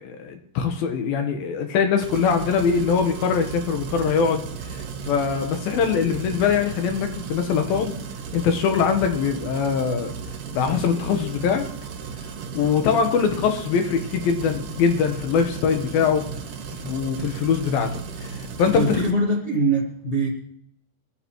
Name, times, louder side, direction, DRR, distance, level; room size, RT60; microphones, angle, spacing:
voice 1, 0.0-8.0 8.3-10.1 10.5-11.7 12.5-16.3 16.8-19.0, left 6 dB, 70° left, 6 dB, 2.5 m, -22 dB
sound 1, 2.0-19.1, right 6 dB, 60° right, 2.6 m, -35 dB
voice 2, 18.7-20.3, right 1 dB, 85° left, -3 dB, 0.6 m, -22 dB
22.0 x 14.0 x 3.1 m, 0.66 s
omnidirectional pair, 5.1 m